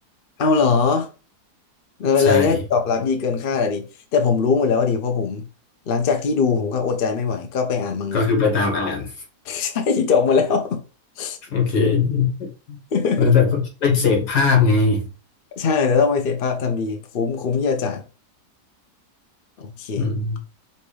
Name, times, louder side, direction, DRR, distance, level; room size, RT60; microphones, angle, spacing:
voice 1, 0.4-1.1 2.0-5.4 5.9-8.2 9.4-10.8 11.2-11.4 12.9-13.3 15.6-18.0 19.6-20.1, left 5 dB, 50° left, 0.7 m, -21 dB
voice 2, 2.3-2.6 8.1-9.1 11.5-12.8 13.2-15.1 20.0-20.4, left 4 dB, 80° left, 2.0 m, -19 dB
5.3 x 2.6 x 3.3 m
omnidirectional pair, 1.7 m